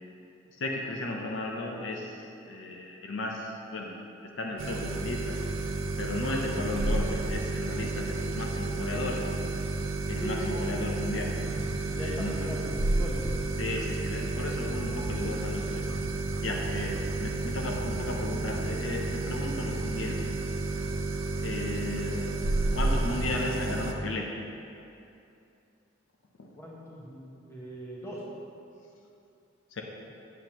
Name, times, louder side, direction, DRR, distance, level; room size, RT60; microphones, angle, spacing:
voice 1, 0.6-3.9 4.4-5.4 6.0-9.4 10.1-11.3 11.9-12.5 13.6-15.9 16.4-20.3 21.4-22.3 22.7-24.3 26.4-26.5 29.7-29.8, left 2 dB, 70° left, 0 dB, 0.7 m, -35 dB
sound 1, 4.6-23.9, right 2 dB, 80° right, 0.5 m, -31 dB
voice 2, 10.2-10.8 11.9-13.3 26.5-28.2, equal, 15° left, -5 dB, 1.0 m, -39 dB
7.9 x 7.1 x 3.0 m, 2.7 s
head